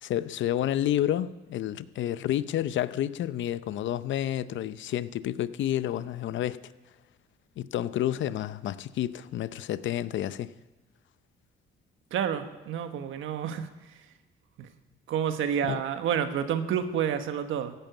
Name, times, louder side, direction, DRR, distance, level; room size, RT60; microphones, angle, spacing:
voice 1, 0.0-6.6 7.6-10.5 15.7-15.8, left 12 dB, 70° left, 0.7 m, -30 dB
voice 2, 12.1-13.7 14.6-14.7 15.1-17.7, right 8 dB, 80° right, 1.3 m, -29 dB
15.0 x 9.1 x 9.1 m
cardioid pair, 90°, 20 cm